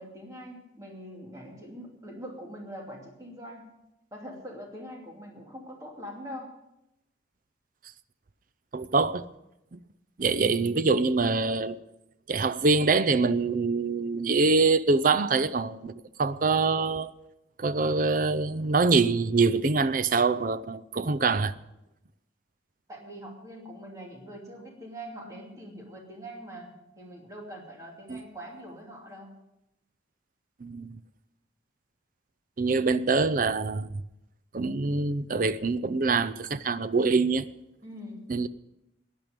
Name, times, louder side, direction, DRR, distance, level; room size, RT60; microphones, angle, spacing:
voice 1, 0.0-3.7 4.1-6.5 10.3-10.9 22.9-29.4 37.8-38.3, equal, 15° right, 2.7 m, -43 dB
voice 2, 8.7-9.3 9.7-9.8 10.2-11.8 12.3-17.1 17.6-21.5 28.1-28.2 30.6-31.0 32.6-34.0 34.5-37.5 38.3-38.5, right 4 dB, 45° right, 0.5 m, -25 dB
17.0 x 10.5 x 5.2 m
head